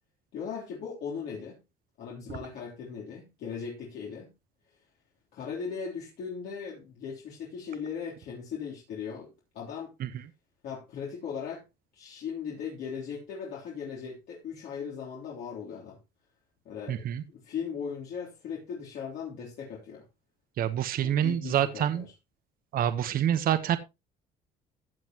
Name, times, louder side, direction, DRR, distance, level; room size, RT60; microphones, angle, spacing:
voice 1, 0.3-1.6 2.0-4.3 5.3-9.9 10.6-11.6 11.9-16.0 16.6-20.0 21.0-22.1, left 6 dB, 75° left, 3.4 m, -38 dB
voice 2, 16.9-17.2 20.6-22.1 22.7-23.8, right 10 dB, 60° right, 1.1 m, -27 dB
15.0 x 7.8 x 3.0 m
cardioid pair, 110°, 17 cm